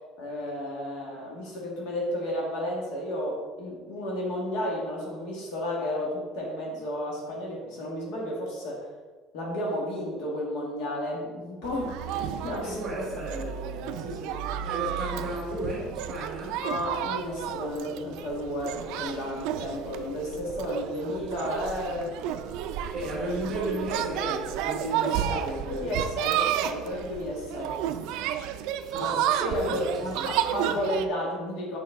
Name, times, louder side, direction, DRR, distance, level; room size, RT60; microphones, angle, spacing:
voice 1, 0.2-8.9 9.3-12.8 14.0-14.1 16.6-22.2 25.0-27.8 29.0-31.8, left 1 dB, 65° left, -2 dB, 1.6 m, -32 dB
sound 1, 11.6-31.1, right 10 dB, 65° right, 0.4 m, -32 dB
voice 2, 12.6-16.6 22.9-25.9 28.9-29.2 29.6-29.9 30.2-30.3, right 1 dB, 25° right, -3 dB, 1.6 m, -34 dB
6.8 x 5.2 x 3.6 m, 1.4 s
cardioid pair, 175°, 0 cm